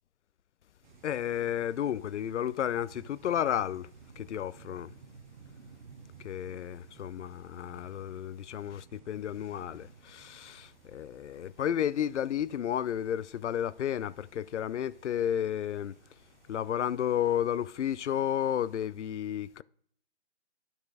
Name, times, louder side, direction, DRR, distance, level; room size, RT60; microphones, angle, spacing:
sound 1, 0.8-18.8, right 6 dB, 45° right, 1.0 m, -57 dB
voice 1, 1.0-3.9 4.2-4.9 6.2-16.0 16.5-19.6, left 10 dB, 80° left, 0.5 m, -32 dB
12.0 x 4.3 x 4.8 m
hypercardioid pair, 155°, 35 cm